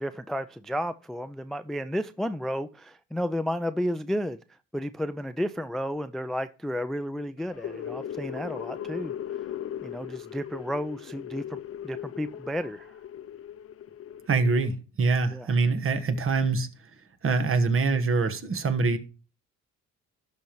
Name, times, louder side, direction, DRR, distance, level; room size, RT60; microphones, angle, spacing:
voice 1, 0.0-4.4 4.7-9.1 9.8-11.6 11.8-12.9 15.3-15.5, equal, ahead, 0.3 m, -32 dB
sound 1, 7.4-14.6, left 10 dB, 50° left, 0.6 m, -38 dB
voice 2, 14.3-16.7 17.2-19.0, right 4 dB, 45° right, 1.3 m, -24 dB
12.5 x 5.2 x 3.0 m
cardioid pair, 90°, 30 cm